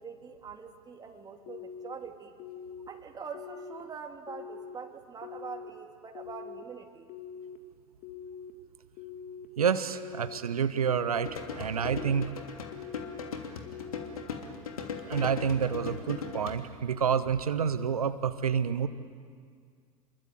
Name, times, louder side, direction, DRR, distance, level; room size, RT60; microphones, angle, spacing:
voice 1, 0.0-2.3 2.9-7.1, right 5 dB, 20° right, 3 dB, 3.1 m, -44 dB
sound 1, 1.5-1.9 2.4-2.9 3.3-3.8 4.3-4.8 5.2-5.7 6.1-6.6 7.1-7.6 8.0-8.5 9.0-9.5 9.9-10.4 10.8-11.3 11.8-12.3 12.7-13.2 13.7-14.1, left 7 dB, 45° left, 2.4 m, -44 dB
voice 2, 9.6-12.3 15.1-18.9, right 7 dB, 75° right, 12 dB, 1.1 m, -28 dB
sound 2, 11.1-16.6, left 6 dB, 70° left, 2.9 m, -39 dB
28.0 x 22.5 x 8.5 m, 2.1 s
figure-of-eight pair, 80°, 19 cm